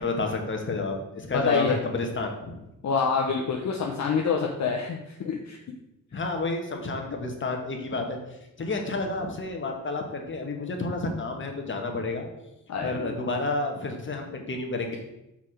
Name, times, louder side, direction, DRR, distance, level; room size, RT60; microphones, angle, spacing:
voice 1, 0.0-2.6 6.1-12.3 12.8-15.0, left 3 dB, 35° left, 3 dB, 1.3 m, -30 dB
voice 2, 1.3-1.8 2.8-5.6 12.7-13.1, left 5 dB, 55° left, 1 dB, 0.8 m, -27 dB
5.9 x 4.5 x 5.0 m, 0.90 s
cardioid pair, 95°, 33 cm